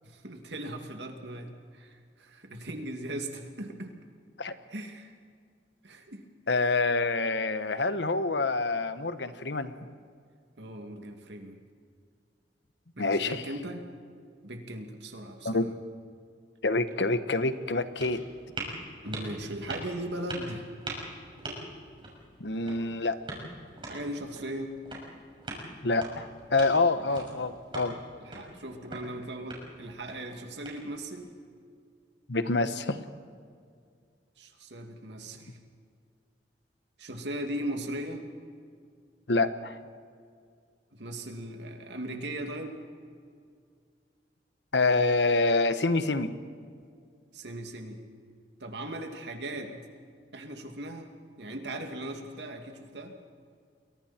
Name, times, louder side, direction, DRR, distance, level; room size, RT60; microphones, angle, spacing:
voice 1, 0.0-3.9 4.7-5.1 5.8-6.2 10.6-11.6 13.0-13.9 14.4-15.7 19.0-20.7 23.9-24.8 27.0-27.1 28.2-31.3 34.4-35.6 37.0-38.2 40.9-42.7 47.3-48.0 48.6-49.7 50.3-51.1 51.4-53.2, right 1 dB, 70° right, 4 dB, 2.6 m, -38 dB
voice 2, 6.5-9.9 13.0-13.4 15.4-15.6 16.6-18.2 22.4-23.2 25.8-28.0 32.3-33.0 39.3-39.8 44.7-46.3, left 3 dB, 70° left, 11 dB, 1.2 m, -27 dB
sound 1, 16.8-31.2, right 2 dB, 30° right, 6.1 m, -43 dB
29.5 x 22.5 x 4.5 m, 2.2 s
head